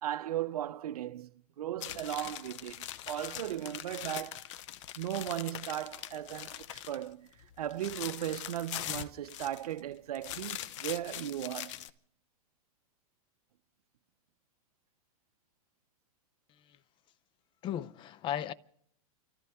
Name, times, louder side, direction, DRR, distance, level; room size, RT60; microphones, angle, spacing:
voice 1, 0.0-4.5 5.0-11.8, right 12 dB, 85° right, 0.6 m, -37 dB
sound 1, 1.8-7.1 7.4-9.8 10.1-11.9, left 13 dB, 55° left, 0.9 m, -42 dB
voice 2, 17.6-18.5, left 10 dB, 25° left, 0.6 m, -35 dB
29.0 x 14.0 x 3.5 m
hypercardioid pair, 135°, 19 cm